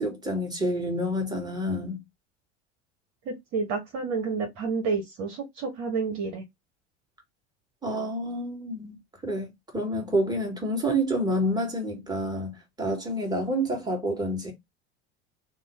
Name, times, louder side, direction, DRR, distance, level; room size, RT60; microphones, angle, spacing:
voice 1, 0.0-2.0 7.8-9.0 9.2-14.5, equal, 10° right, 1.8 m, -28 dB
voice 2, 3.2-6.4, right 4 dB, 55° right, 1.2 m, -30 dB
3.0 x 2.2 x 4.2 m
hypercardioid pair, 80°, 33 cm